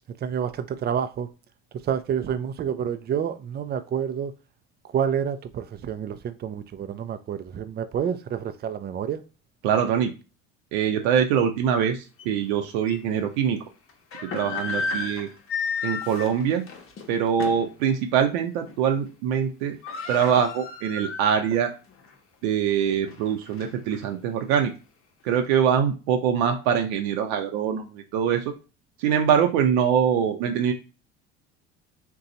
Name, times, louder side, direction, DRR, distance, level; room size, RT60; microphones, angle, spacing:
voice 1, 0.2-1.3 1.8-4.3 4.9-9.2, right 8 dB, 30° right, 0.5 m, -28 dB
voice 2, 9.6-10.1 10.7-13.6 14.2-15.3 15.8-16.7 17.1-19.8 20.1-21.7 22.4-24.7 25.2-28.5 29.0-30.7, right 8 dB, 80° right, 0.7 m, -23 dB
sound 1, 12.2-12.3 12.9-13.0 13.9-17.7 18.1-18.3 18.7-19.1 19.3-19.4 19.6-21.6 22.0-22.1 22.7-24.0, left 4 dB, 40° left, 0.9 m, -33 dB
2.7 x 2.3 x 3.9 m
supercardioid pair, 80°, 33 cm